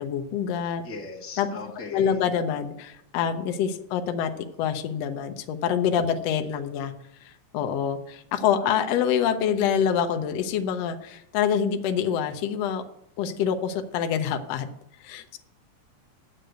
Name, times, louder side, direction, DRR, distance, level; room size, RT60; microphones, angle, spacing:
voice 1, 0.0-0.8 1.4-1.5 1.9-4.3 4.6-6.9 7.2-12.8 13.2-14.7 15.0-15.2, left 8 dB, 80° left, 6 dB, 1.4 m, -26 dB
voice 2, 0.8-2.2, left 3 dB, 10° left, -2 dB, 0.7 m, -39 dB
7.8 x 6.6 x 7.8 m, 0.77 s
omnidirectional pair, 3.7 m